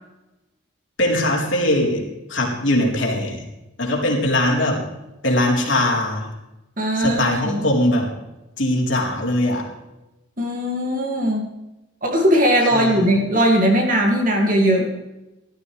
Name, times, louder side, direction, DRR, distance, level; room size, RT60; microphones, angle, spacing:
voice 1, 1.0-3.4 3.8-4.8 5.2-6.3 6.9-8.1 8.6-9.7 12.7-13.1, left 1 dB, 60° left, -1 dB, 4.1 m, -21 dB
voice 2, 6.8-7.6 10.4-11.5 12.0-14.9, equal, 40° right, 0 dB, 2.5 m, -19 dB
17.5 x 13.5 x 3.4 m, 0.97 s
head